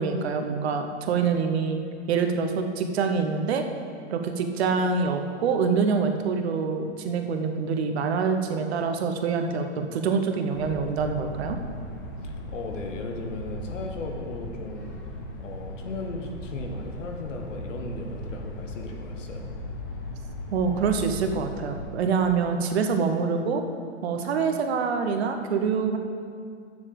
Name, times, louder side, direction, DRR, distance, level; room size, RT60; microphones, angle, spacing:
voice 1, 0.0-1.8 2.1-3.6 4.1-11.6 20.5-23.6 24.0-26.0, right 5 dB, 55° right, 6 dB, 1.1 m, -25 dB
sound 1, 10.5-22.0, left 1 dB, 15° left, 0.3 m, -37 dB
voice 2, 12.2-15.0 15.4-19.5, left 3 dB, 75° left, 3 dB, 1.6 m, -36 dB
7.2 x 6.9 x 6.9 m, 2.2 s
hypercardioid pair, 155°, 37 cm